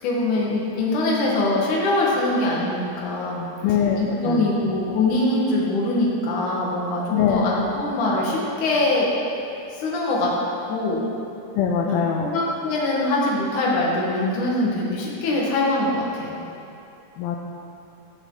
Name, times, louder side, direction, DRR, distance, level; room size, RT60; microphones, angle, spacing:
voice 1, 0.0-3.4 4.0-9.1 9.7-10.3 10.7-11.0 11.9-16.4, left 2 dB, 60° left, -4 dB, 2.8 m, -23 dB
voice 2, 3.6-4.6 7.1-7.4 11.6-12.3 17.2-17.4, left 7 dB, 80° left, 1 dB, 2.4 m, -22 dB
15.0 x 6.4 x 3.9 m, 2.7 s
omnidirectional pair, 4.4 m